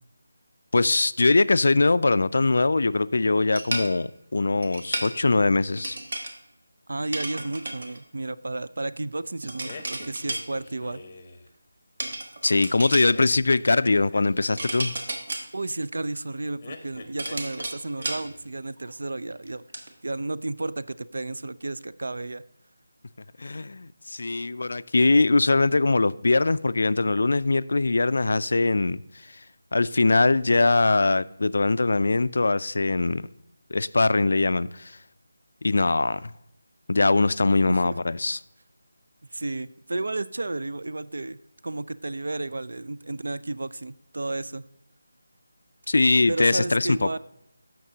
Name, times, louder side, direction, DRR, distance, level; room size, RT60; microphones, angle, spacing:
voice 1, 0.7-6.0 12.4-14.9 23.4-29.0 29.7-33.3 33.7-35.0 35.6-36.3 36.9-38.4 45.9-47.2, left 3 dB, 60° left, 0.3 m, -22 dB
sound 1, 3.6-3.9 4.6-5.1 5.8-6.3 7.1-8.0 9.4-10.4 12.0-13.1 14.4-15.5 16.7-18.3 18.8-18.9 19.3-19.9, right 2 dB, 55° right, 1.3 m, -33 dB
voice 2, 6.9-11.0 15.5-19.6 20.0-22.4 37.7-38.0 39.3-41.4 41.6-44.7 46.3-47.2, right 2 dB, 70° right, 0.4 m, -32 dB
sound 2, 9.6-11.5 13.1-14.9 16.6-17.7 18.0-18.5, left 4 dB, 25° left, 0.7 m, -45 dB
14.0 x 5.9 x 2.8 m
figure-of-eight pair, 175°, 0 cm